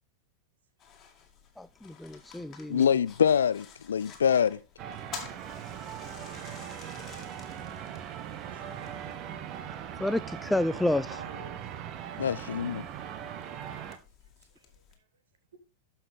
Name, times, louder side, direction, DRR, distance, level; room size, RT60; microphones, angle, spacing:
sound 1, 0.8-15.0, left 7 dB, 30° left, 2.1 m, -51 dB
voice 1, 1.6-2.8 10.0-11.2, left 1 dB, 5° left, 0.3 m, -29 dB
voice 2, 2.7-4.6 12.2-12.8, left 8 dB, 65° left, 0.5 m, -25 dB
sound 2, 4.8-14.0, right 9 dB, 40° right, 1.0 m, -40 dB
voice 3, 8.4-8.8 11.0-12.0 14.2-15.1, right 4 dB, 65° right, 1.8 m, -53 dB
13.0 x 5.7 x 3.6 m
figure-of-eight pair, 90°, 0 cm